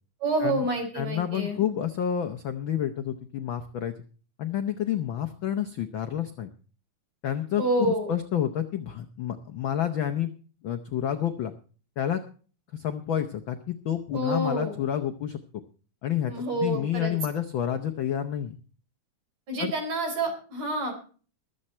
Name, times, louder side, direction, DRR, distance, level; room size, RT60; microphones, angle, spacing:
voice 1, 0.2-1.6 7.6-8.1 14.1-14.7 16.3-17.1 19.5-20.9, right 1 dB, 60° right, 3 dB, 5.4 m, -28 dB
voice 2, 0.9-3.9 4.4-6.5 7.2-10.3 10.6-11.5 12.0-12.2 12.7-15.4 16.0-18.6 19.6-19.7, left 10 dB, 90° left, 8 dB, 1.0 m, -29 dB
22.0 x 7.7 x 4.3 m, 0.39 s
omnidirectional pair, 3.5 m